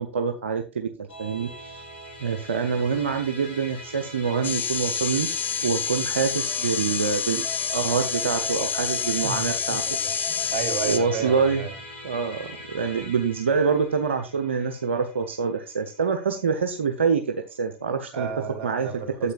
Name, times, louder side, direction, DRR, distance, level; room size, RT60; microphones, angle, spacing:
voice 1, 0.0-1.9 2.2-5.3 5.6-9.8 10.8-11.6 12.0-12.5 12.7-18.3 18.6-18.9 19.2-19.3, right 5 dB, 90° right, 4 dB, 0.8 m, -26 dB
Musical instrument, 1.1-16.6, left 1 dB, 75° left, 3.8 m, -42 dB
sound 1, 4.4-11.0, left 7 dB, 30° left, 1.1 m, -28 dB
Wind instrument woodwind instrument, 6.3-11.8, equal, 15° left, 4.2 m, -42 dB
voice 2, 9.2-9.8 10.0-11.7 18.1-19.3, right 6 dB, 60° right, 4 dB, 2.8 m, -33 dB
9.9 x 7.6 x 2.4 m, 0.34 s
hypercardioid pair, 85°, 6 cm